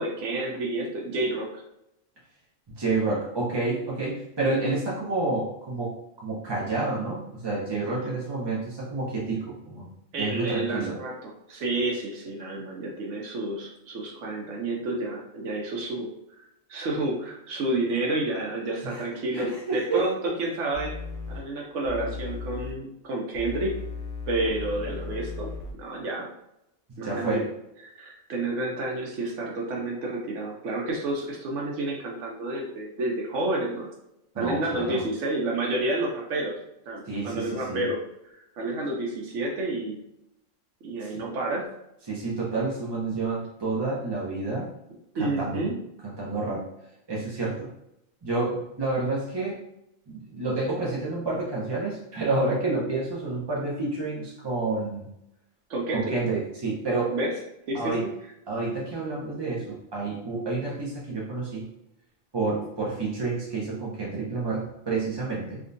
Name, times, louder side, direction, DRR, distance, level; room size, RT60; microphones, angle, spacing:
voice 1, 0.0-1.6 10.1-16.1 16.7-21.0 21.3-23.7 24.3-25.5 25.8-26.3 27.0-27.4 27.8-33.9 34.4-36.6 36.9-38.0 38.6-40.0 40.8-41.7 45.1-45.8 55.7-56.1 57.1-57.3 57.7-58.1, right 2 dB, 75° right, -1 dB, 1.0 m, -30 dB
voice 2, 2.8-9.9 10.1-11.0 18.8-19.0 19.3-20.1 27.0-27.4 34.3-35.0 37.1-37.8 41.0-41.2 42.1-44.7 45.2-45.7 46.0-46.7 47.1-47.7 48.2-49.6 50.1-55.1 55.9-57.2 57.7-58.1 58.5-61.6 62.3-65.6, right 3 dB, 45° right, -5 dB, 0.3 m, -29 dB
sound 1, 20.7-21.4 21.8-22.7 23.3-25.7, left 4 dB, 60° left, 0.6 m, -36 dB
3.5 x 2.1 x 2.5 m, 0.84 s
omnidirectional pair, 1.3 m